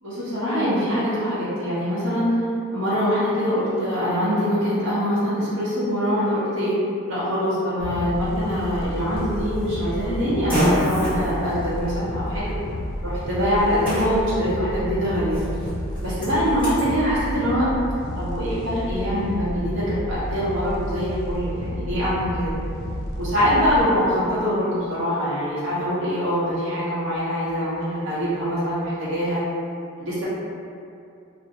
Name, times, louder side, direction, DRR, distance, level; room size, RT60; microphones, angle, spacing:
voice 1, 0.0-2.4 2.7-6.7 7.1-12.4 13.0-15.4 16.0-17.7 18.2-22.5 23.2-29.4 30.0-30.2, equal, 65° right, -11 dB, 0.7 m, -24 dB
sound 1, 7.8-23.8, equal, 90° left, 0.5 m, -31 dB
Fart, 9.1-16.9, equal, 5° left, 1.1 m, -30 dB
2.4 x 2.1 x 2.7 m, 2.5 s
head